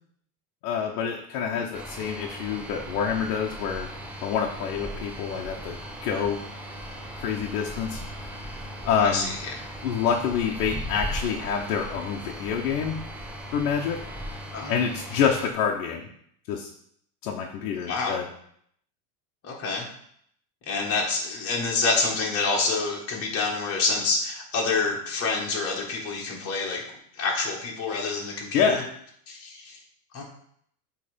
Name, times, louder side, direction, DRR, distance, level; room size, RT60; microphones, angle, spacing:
voice 1, 0.6-3.9 4.2-6.4 7.2-8.4 8.8-9.3 9.8-13.0 13.5-14.0 14.7-16.1 16.5-16.7 17.2-18.3 28.5-28.9, left 7 dB, 70° left, 0 dB, 1.1 m, -27 dB
sound 1, 1.7-15.5, equal, 5° right, 0.5 m, -38 dB
voice 2, 9.0-9.3 14.5-14.7 17.9-18.2 19.4-19.9 20.7-26.8 27.2-28.8 29.3-29.8 30.1-30.2, left 3 dB, 30° left, -2 dB, 2.0 m, -27 dB
8.2 x 3.4 x 5.1 m, 0.67 s
supercardioid pair, 145°, 47 cm